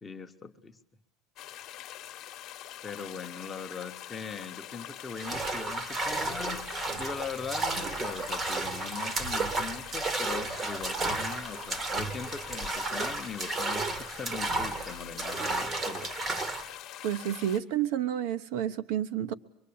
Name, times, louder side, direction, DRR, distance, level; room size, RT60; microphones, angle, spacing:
voice 1, 0.0-0.8 2.8-16.1, left 5 dB, 10° left, 5 dB, 1.0 m, -40 dB
sound 1, 1.4-17.6, left 12 dB, 35° left, 1.3 m, -44 dB
sound 2, 5.2-16.7, right 3 dB, 20° right, 1.1 m, -33 dB
voice 2, 17.0-19.3, right 10 dB, 60° right, 10 dB, 1.0 m, -30 dB
24.5 x 23.0 x 8.7 m, 0.73 s
cardioid pair, 180°, 0 cm